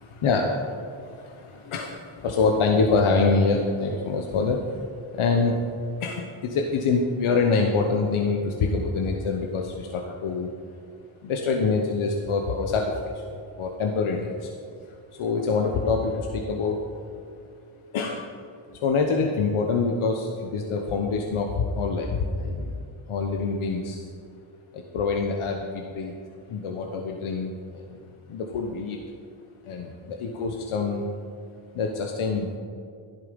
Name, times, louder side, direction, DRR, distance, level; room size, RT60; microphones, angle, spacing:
voice 1, 0.0-4.9 5.1-5.5 6.0-10.5 11.2-13.3 13.6-14.5 15.2-16.8 17.9-18.2 18.8-22.8 23.1-24.1 24.7-26.1 26.5-28.0 28.3-29.0 29.7-31.1 31.7-32.6, left 4 dB, 90° left, 2 dB, 1.1 m, -25 dB
12.5 x 11.0 x 5.3 m, 2.3 s
cardioid pair, 60°, 48 cm